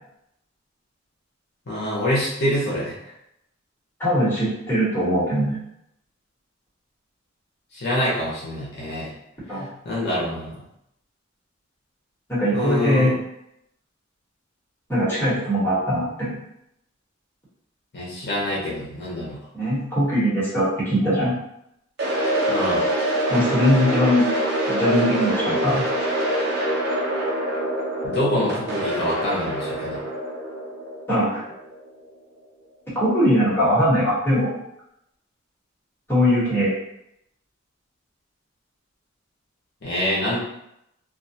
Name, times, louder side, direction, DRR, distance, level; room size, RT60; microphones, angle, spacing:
voice 1, 1.7-2.9 7.7-9.1 9.8-10.6 12.5-13.1 17.9-19.4 22.5-22.8 28.0-30.0 39.8-40.4, left 1 dB, 55° left, -6 dB, 0.7 m, -25 dB
voice 2, 4.0-5.6 9.5-9.7 12.3-13.1 14.9-16.4 19.5-21.3 23.3-24.3 24.7-25.8 31.1-31.4 32.9-34.6 36.1-36.7, equal, 10° left, -10 dB, 1.2 m, -21 dB
sound 1, 22.0-32.0, right 1 dB, 55° right, 0.6 m, -25 dB
2.3 x 2.3 x 2.7 m, 0.80 s
head